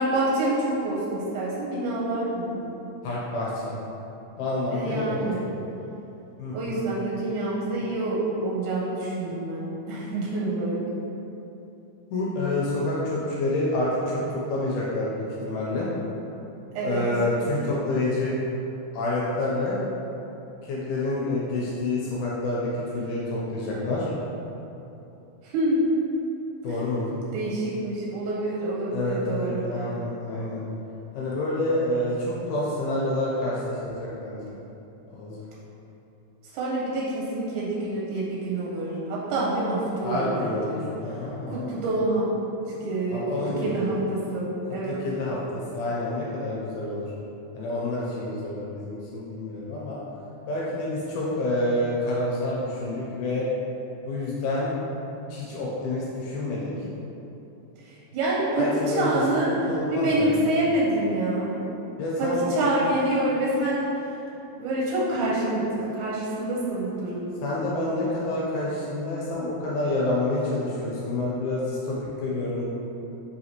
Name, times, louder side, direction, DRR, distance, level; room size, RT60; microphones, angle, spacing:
voice 1, 0.0-2.6 4.7-5.4 6.5-10.8 16.7-17.0 25.5-25.8 27.3-29.7 36.5-40.9 41.5-42.3 42.6-43.2 43.6-45.0 58.1-58.7 59.0-59.5 59.9-61.5 62.2-63.9 64.6-67.4, right 2 dB, 80° right, -6 dB, 2.0 m, -27 dB
voice 2, 3.0-3.7 4.4-5.2 6.4-6.8 12.1-15.9 16.8-18.3 18.9-19.8 20.6-24.1 26.6-27.2 28.9-30.6 31.1-34.5 35.1-35.5 40.0-41.7 43.1-43.7 44.8-45.4 45.7-47.1 47.6-50.0 50.5-53.5 54.1-54.8 55.3-56.7 58.6-59.1 59.7-60.4 62.0-62.7 67.4-72.7, left 2 dB, 80° left, -5 dB, 1.7 m, -28 dB
4.9 x 2.8 x 2.8 m, 3.0 s
omnidirectional pair, 3.7 m